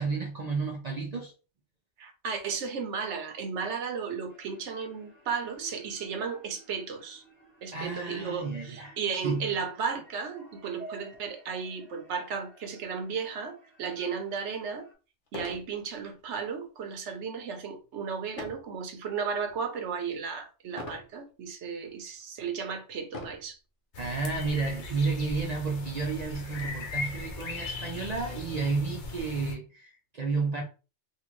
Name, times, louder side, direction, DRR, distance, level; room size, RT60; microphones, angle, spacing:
voice 1, 0.0-1.3 7.7-9.5 24.0-30.6, right 4 dB, 50° right, 0.5 m, -31 dB
voice 2, 2.0-7.2 7.6-14.9 15.3-23.6, right 6 dB, 75° right, 1.0 m, -34 dB
sound 1, 4.3-14.9, right 2 dB, 10° left, 1.1 m, -54 dB
sound 2, 14.3-14.4 15.3-15.7 16.1-16.5 18.4-18.7 19.3-19.8 20.8-21.1 21.9-22.0 23.1-23.5 24.6-24.7 25.0-25.1 25.6-26.7, left 2 dB, 50° left, 0.9 m, -42 dB
sound 3, 23.9-29.5, left 3 dB, 80° left, 1.1 m, -39 dB
3.6 x 2.4 x 3.0 m
omnidirectional pair, 1.2 m